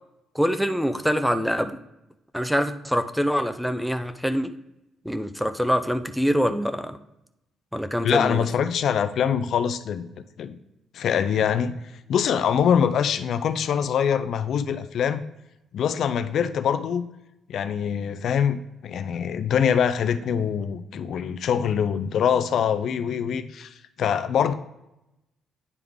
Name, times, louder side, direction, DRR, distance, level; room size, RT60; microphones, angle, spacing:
voice 1, 0.3-1.8 2.3-4.5 5.0-7.0 7.7-8.5, equal, ahead, 10 dB, 0.4 m, -24 dB
voice 2, 8.0-10.1 10.4-10.6 10.9-11.8 12.1-15.2 15.7-17.1 17.5-24.5, left 8 dB, 65° left, 11 dB, 0.4 m, -24 dB
9.4 x 3.6 x 3.5 m, 0.89 s
cardioid pair, 110°, 0 cm